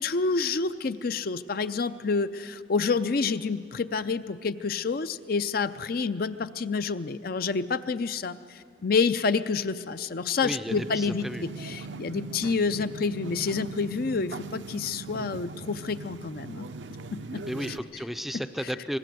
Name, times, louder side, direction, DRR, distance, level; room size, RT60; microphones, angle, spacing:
voice 1, 0.0-8.4 8.8-16.7 17.1-17.4, left 4 dB, 50° left, 12 dB, 0.5 m, -28 dB
voice 2, 10.4-11.4 12.7-12.9 17.4-19.0, equal, ahead, 10 dB, 0.5 m, -34 dB
sound 1, 10.7-17.8, right 4 dB, 70° right, 0.7 m, -40 dB
25.0 x 20.0 x 7.7 m, 2.3 s
head